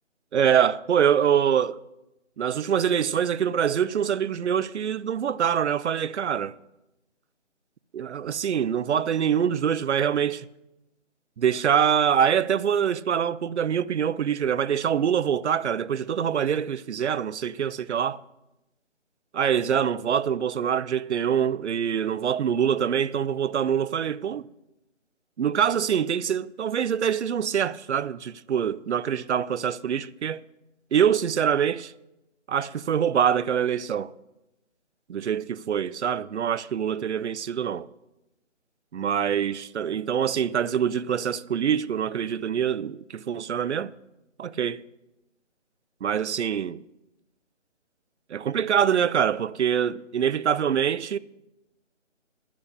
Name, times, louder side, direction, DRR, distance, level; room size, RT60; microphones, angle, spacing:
voice 1, 0.3-1.8 2.4-6.5 7.9-10.5 11.4-18.2 19.3-24.5 25.4-30.4 30.9-31.9 32.5-34.1 35.1-37.9 38.9-43.9 44.4-44.8 46.0-46.8 48.3-51.2, right 8 dB, 65° right, 0.5 m, -24 dB
10.0 x 8.5 x 6.4 m
figure-of-eight pair, 160°, 37 cm